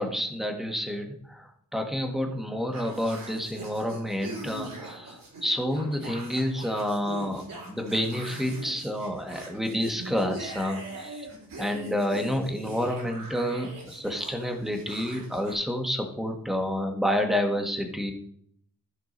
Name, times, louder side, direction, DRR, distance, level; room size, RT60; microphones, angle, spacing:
voice 1, 0.0-11.3 11.6-18.1, equal, ahead, 3 dB, 1.5 m, -29 dB
sound 1, 2.7-15.5, right 2 dB, 70° right, 4.5 m, -42 dB
14.0 x 5.9 x 4.0 m, 0.67 s
wide cardioid pair, 150°, 34 cm